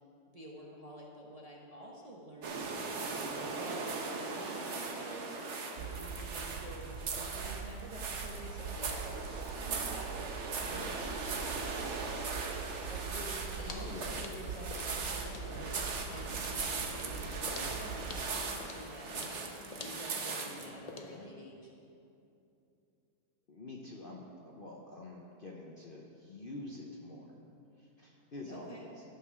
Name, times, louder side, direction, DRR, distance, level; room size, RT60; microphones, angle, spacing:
voice 1, 0.3-3.0 3.3-5.4 5.7-9.0 9.5-10.2 10.6-11.4 12.9-15.7 16.1-19.4 19.8-21.7 28.5-28.8, right 1 dB, 30° right, -3 dB, 0.8 m, -49 dB
sound 1, 2.4-20.7, right 4 dB, 50° right, 1.1 m, -39 dB
voice 2, 3.2-3.6 10.5-10.9 13.7-14.2 15.4-15.8 17.4-17.8 20.9-21.3 23.5-27.4 27.8-29.0, left 2 dB, 45° left, -1 dB, 0.8 m, -47 dB
sound 2, 5.8-18.3, right 5 dB, 85° right, 1.3 m, -44 dB
sound 3, 13.1-21.3, left 3 dB, 65° left, 0.3 m, -49 dB
12.5 x 5.8 x 6.2 m, 2.7 s
omnidirectional pair, 1.8 m